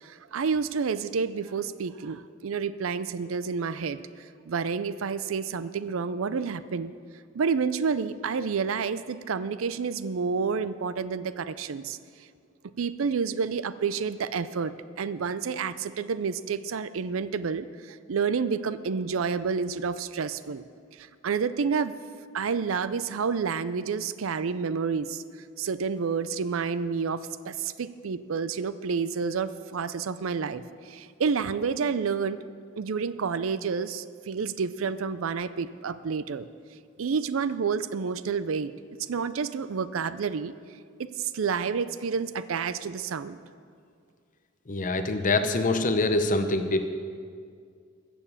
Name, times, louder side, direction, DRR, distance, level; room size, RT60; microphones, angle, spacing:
voice 1, 0.0-6.9 7.3-12.0 12.8-20.6 21.0-21.9 22.3-25.2 25.6-32.4 32.8-36.5 37.0-38.7 39.0-40.5 41.0-43.4, right 5 dB, 80° right, 15 dB, 0.5 m, -29 dB
voice 2, 44.7-46.9, left 2 dB, 40° left, 8 dB, 0.9 m, -25 dB
14.0 x 7.0 x 7.2 m, 2.2 s
head